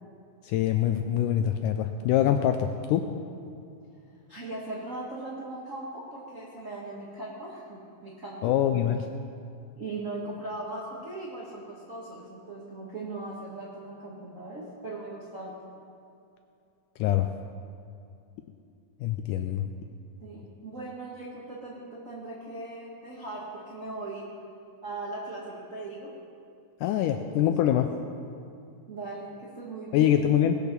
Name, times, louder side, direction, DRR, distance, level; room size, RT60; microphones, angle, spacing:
voice 1, 0.4-3.1 8.4-9.1 17.0-17.3 19.0-19.6 26.8-27.9 29.9-30.6, left 11 dB, 85° left, 6 dB, 1.9 m, -24 dB
voice 2, 4.3-8.6 9.8-15.7 20.2-24.3 24.8-26.1 27.4-27.8 28.9-30.2, right 2 dB, 60° right, -4 dB, 0.8 m, -39 dB
19.0 x 7.0 x 5.9 m, 2.5 s
omnidirectional pair, 4.1 m